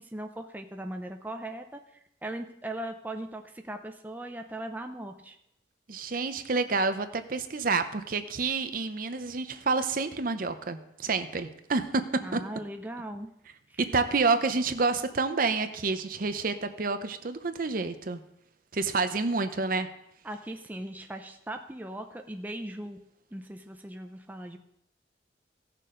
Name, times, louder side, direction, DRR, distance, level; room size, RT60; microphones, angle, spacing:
voice 1, 0.0-1.8 2.2-5.4 12.2-13.3 13.7-13.8 20.2-23.0 23.3-24.6, right 1 dB, 10° right, 5 dB, 0.5 m, -39 dB
voice 2, 5.9-12.0 12.3-12.4 13.8-18.2 18.7-19.9, right 4 dB, 50° right, 9 dB, 0.7 m, -28 dB
16.5 x 6.7 x 3.8 m, 0.78 s
head